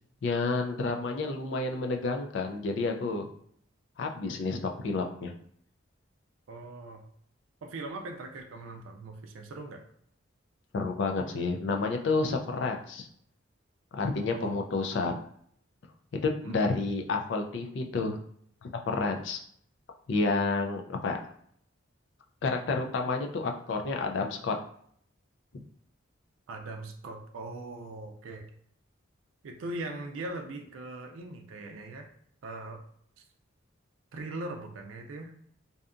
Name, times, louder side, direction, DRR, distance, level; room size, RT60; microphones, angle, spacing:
voice 1, 0.2-3.3 4.0-5.3 10.7-13.1 14.0-15.2 16.2-18.2 18.9-19.4 20.1-21.2 22.4-24.5, left 3 dB, 65° left, 3 dB, 0.4 m, -30 dB
voice 2, 6.5-7.0 7.6-9.8 14.3-14.6 16.4-16.6 26.5-28.5 29.4-32.1 32.4-32.8 34.1-35.3, right 2 dB, 90° right, 3 dB, 0.4 m, -40 dB
2.7 x 2.3 x 2.4 m, 0.65 s
head